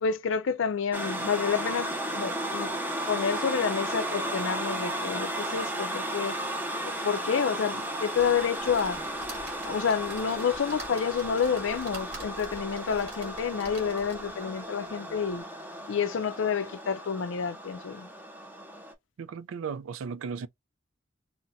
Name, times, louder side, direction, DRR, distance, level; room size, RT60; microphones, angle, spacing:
voice 1, 0.0-2.7 3.1-6.3 6.8-9.0 9.7-15.4 15.9-18.1, left 6 dB, 70° left, 0.4 m, -29 dB
sound 1, 0.9-18.9, right 1 dB, 10° right, 0.5 m, -34 dB
sound 2, 8.2-14.4 14.9-15.0 15.3-15.4, right 2 dB, 55° right, 2.3 m, -47 dB
voice 2, 19.2-20.5, right 6 dB, 85° right, 0.4 m, -35 dB
4.0 x 2.1 x 2.5 m
head